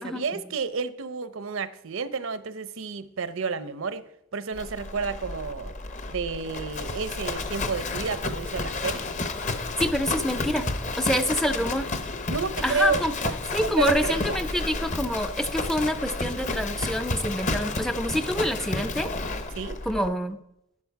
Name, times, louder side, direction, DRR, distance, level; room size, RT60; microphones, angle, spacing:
voice 1, 0.0-4.0 4.3-5.7 6.1-9.0 12.3-13.3 13.6-14.4 19.6-19.8, right 5 dB, 70° right, 14 dB, 0.7 m, -30 dB
Livestock farm animals working animals, 4.5-20.1, left 3 dB, 35° left, 0.8 m, -31 dB
voice 2, 9.8-10.6 11.0-11.9 12.6-13.1 13.5-19.1 19.9-20.4, equal, ahead, 9 dB, 0.4 m, -26 dB
11.0 x 11.0 x 4.6 m, 0.80 s
head